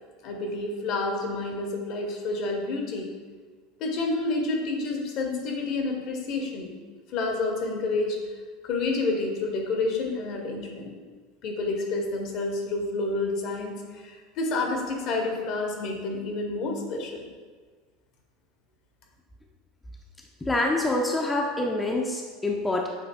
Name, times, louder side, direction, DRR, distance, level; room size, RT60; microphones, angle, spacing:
voice 1, 0.2-3.1 3.8-6.7 7.1-8.2 8.6-10.9 11.4-17.3, left 3 dB, 50° left, 1 dB, 0.7 m, -29 dB
voice 2, 20.4-22.9, left 2 dB, 10° left, -1 dB, 0.4 m, -26 dB
6.6 x 2.6 x 2.2 m, 1.4 s
figure-of-eight pair, 80°, 0 cm